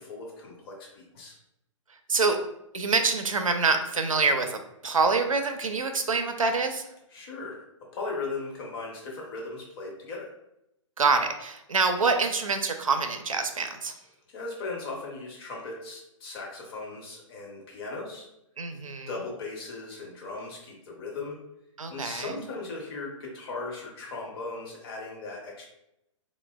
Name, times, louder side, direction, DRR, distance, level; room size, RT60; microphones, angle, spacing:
voice 1, 0.0-1.4 7.1-7.6 7.9-10.3 14.3-18.3 19.1-21.4 21.9-25.7, left 3 dB, 45° left, -2 dB, 0.8 m, -38 dB
voice 2, 2.7-6.8 11.0-14.0 18.6-19.1 21.8-22.3, right 4 dB, 90° right, 6 dB, 0.4 m, -26 dB
3.1 x 2.0 x 2.2 m, 0.83 s
figure-of-eight pair, 120°, 17 cm